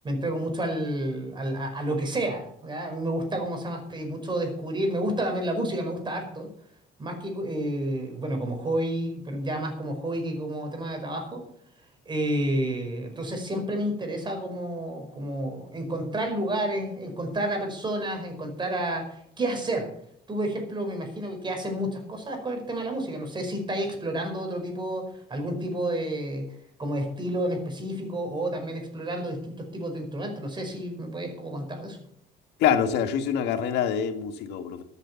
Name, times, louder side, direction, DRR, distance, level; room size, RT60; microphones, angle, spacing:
voice 1, 0.0-6.5 7.0-11.4 12.0-19.9 20.3-32.0, right 1 dB, 25° right, 4 dB, 5.1 m, -30 dB
voice 2, 32.6-34.8, left 8 dB, 85° left, 8 dB, 1.6 m, -25 dB
13.5 x 8.2 x 7.1 m, 0.70 s
cardioid pair, 110°, 17 cm